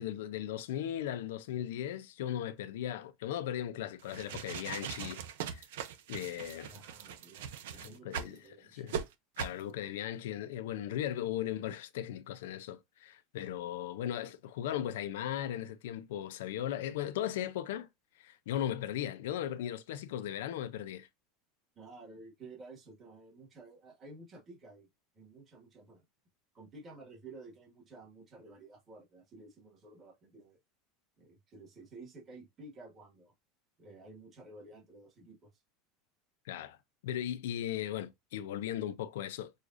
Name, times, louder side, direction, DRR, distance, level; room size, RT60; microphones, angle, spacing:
voice 1, 0.0-5.6 6.1-6.7 7.7-8.4 8.7-9.0 9.4-17.9 18.2-21.1 36.5-36.8 37.0-39.5, left 11 dB, 90° left, 0.5 m, -37 dB
sound 1, 4.0-8.4 8.9-9.0 9.4-9.6, right 8 dB, 85° right, 0.6 m, -40 dB
voice 2, 6.7-8.9 21.8-24.9 25.1-26.0 26.5-30.6 31.2-33.3 33.8-35.6, right 3 dB, 20° right, 1.6 m, -53 dB
6.3 x 2.4 x 2.5 m
supercardioid pair, 155°, 0 cm